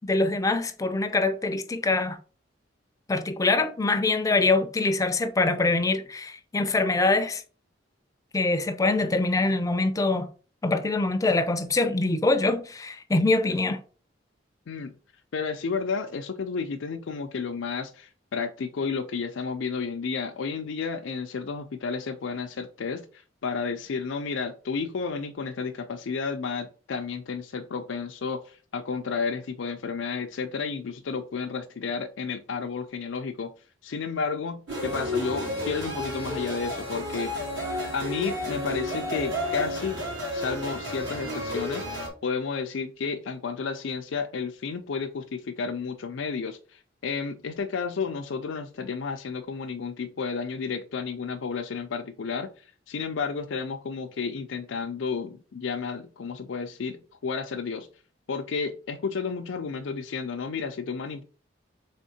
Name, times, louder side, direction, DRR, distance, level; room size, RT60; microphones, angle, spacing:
voice 1, 0.0-2.2 3.1-7.4 8.3-10.3 10.6-13.8, left 3 dB, 20° left, 0.4 m, -24 dB
voice 2, 15.3-33.5 33.8-37.5 37.9-40.0 40.3-41.9 42.2-57.9 58.3-61.3, left 5 dB, 85° left, 0.4 m, -32 dB
sound 1, 34.7-42.1, left 1 dB, 80° right, 2.1 m, -32 dB
3.6 x 3.5 x 4.2 m
head